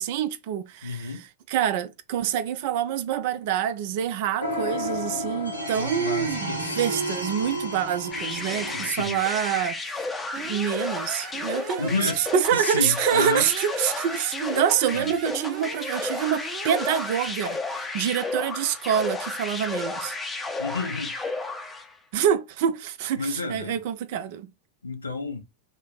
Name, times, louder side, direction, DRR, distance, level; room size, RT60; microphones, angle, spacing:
voice 1, 0.0-10.0 10.4-20.2 22.1-24.5, right 9 dB, 50° right, 0.4 m, -26 dB
voice 2, 0.8-1.2 5.7-6.8 8.7-9.2 11.8-12.2 12.5-13.5 14.9-15.1 20.6-21.1 23.2-23.8 24.8-25.4, left 3 dB, 75° left, 0.6 m, -30 dB
sound 1, 4.4-8.9, equal, 90° right, 1.1 m, -31 dB
sound 2, 8.1-21.9, left 3 dB, 15° left, 0.6 m, -33 dB
Alarm, 10.3-17.3, right 4 dB, 30° right, 0.8 m, -38 dB
3.1 x 2.0 x 3.8 m
figure-of-eight pair, 90°, 0 cm